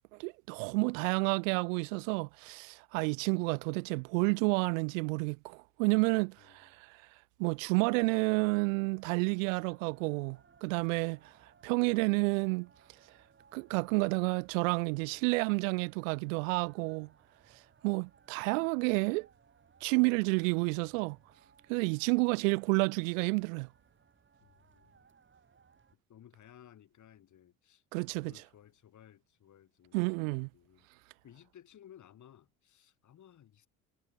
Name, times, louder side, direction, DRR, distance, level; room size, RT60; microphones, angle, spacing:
voice 1, 0.2-7.0 7.4-12.7 13.5-17.1 17.5-19.3 19.8-21.2 21.7-23.7 27.9-28.3 29.9-30.5, right 30 dB, 70° right, 0.6 m, -30 dB
voice 2, 6.4-6.7 24.4-25.0 26.1-30.9 31.2-33.7, left 10 dB, 45° left, 3.9 m, -58 dB
sound 1, 8.9-26.0, right 6 dB, 30° right, 4.0 m, -65 dB
hypercardioid pair, 65°, 40 cm